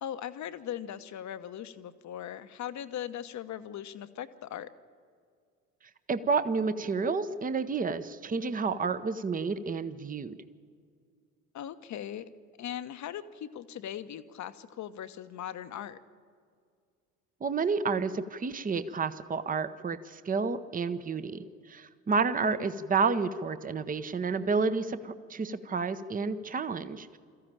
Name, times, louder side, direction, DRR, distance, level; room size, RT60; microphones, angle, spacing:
voice 1, 0.0-4.7 11.5-12.3 12.6-16.0 22.4-22.7, left 10 dB, 40° left, 12 dB, 1.0 m, -39 dB
voice 2, 6.1-10.4 17.4-27.2, right 4 dB, 20° right, 12 dB, 0.9 m, -30 dB
22.0 x 14.5 x 8.9 m, 2.2 s
figure-of-eight pair, 60°, 44 cm